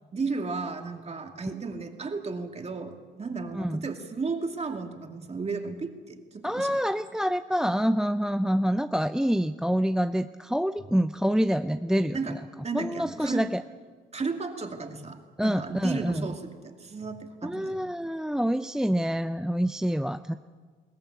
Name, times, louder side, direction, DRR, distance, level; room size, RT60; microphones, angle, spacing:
voice 1, 0.1-6.7 12.1-12.4 12.6-13.4 14.1-17.8, right 4 dB, 30° right, 4 dB, 2.5 m, -34 dB
voice 2, 3.5-3.9 6.4-12.4 12.7-13.6 15.4-16.3 17.4-20.4, equal, 5° right, 10 dB, 0.5 m, -27 dB
21.5 x 17.5 x 8.3 m, 1.5 s
cardioid pair, 90°, 20 cm